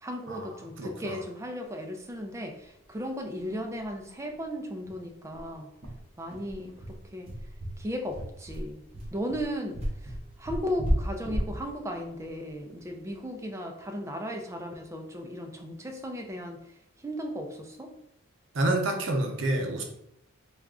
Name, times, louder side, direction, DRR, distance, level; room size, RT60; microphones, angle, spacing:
voice 1, 0.0-5.7 6.2-6.7 7.1-7.3 7.8-8.8 9.1-16.6 17.0-17.9, equal, 15° right, 3 dB, 0.4 m, -36 dB
voice 2, 0.8-1.2 18.5-19.8, right 1 dB, 60° right, 3 dB, 0.6 m, -28 dB
sound 1, 2.9-3.0 3.3-3.4 3.8-3.9 4.3-4.4 4.8-13.3, equal, 30° right, 0.9 m, -34 dB
3.4 x 2.3 x 3.6 m, 0.78 s
head